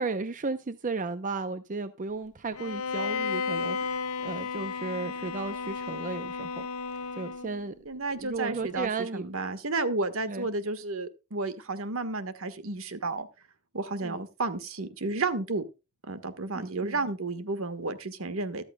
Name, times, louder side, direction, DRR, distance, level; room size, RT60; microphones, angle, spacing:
voice 1, 0.0-6.6 7.2-7.7 8.2-9.2 10.3-10.5 14.0-14.2 16.5-17.0, right 3 dB, 35° right, 11 dB, 0.6 m, -34 dB
Bowed string instrument, 2.6-7.7, left 5 dB, 85° left, 1.0 m, -33 dB
voice 2, 7.8-13.3 13.7-15.6 16.1-18.6, right 3 dB, 65° right, 11 dB, 1.4 m, -32 dB
13.5 x 13.0 x 2.2 m, 0.28 s
head